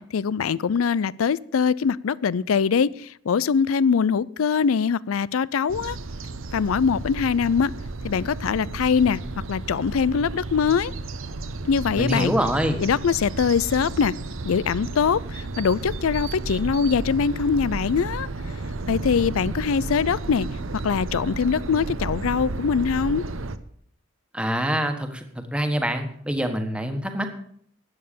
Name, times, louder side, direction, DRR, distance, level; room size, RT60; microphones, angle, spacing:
voice 1, 0.1-6.0 6.5-7.7 8.0-9.2 9.5-10.9 11.6-12.3 12.8-14.1 14.4-18.3 18.9-20.5 20.8-23.2, left 6 dB, 90° left, 21 dB, 0.4 m, -22 dB
sound 1, 5.7-23.6, right 2 dB, 75° right, 0.9 m, -33 dB
voice 2, 12.0-12.8 24.3-27.3, equal, 5° right, 5 dB, 1.5 m, -25 dB
13.0 x 8.8 x 6.9 m, 0.63 s
head